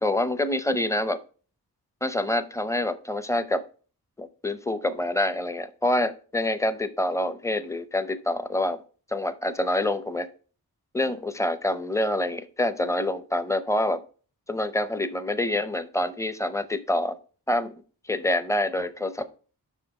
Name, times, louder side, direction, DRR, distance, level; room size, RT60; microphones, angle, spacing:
voice 1, 0.0-1.2 2.0-3.6 4.2-8.8 9.1-10.3 10.9-14.0 14.5-17.2 17.5-17.7 18.1-19.3, left 1 dB, 10° left, 12 dB, 0.6 m, -26 dB
5.9 x 5.0 x 4.8 m, 0.38 s
wide cardioid pair, 65°, 39 cm